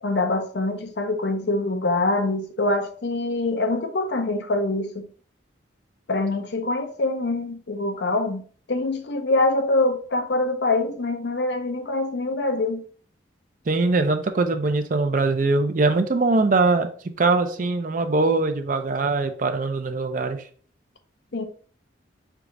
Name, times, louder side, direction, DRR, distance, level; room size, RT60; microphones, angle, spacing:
voice 1, 0.0-5.1 6.1-12.8 21.3-21.5, left 2 dB, 65° left, 0.6 m, -24 dB
voice 2, 13.7-16.9 17.2-20.4, right 3 dB, 45° right, 0.4 m, -22 dB
4.6 x 2.4 x 3.9 m
head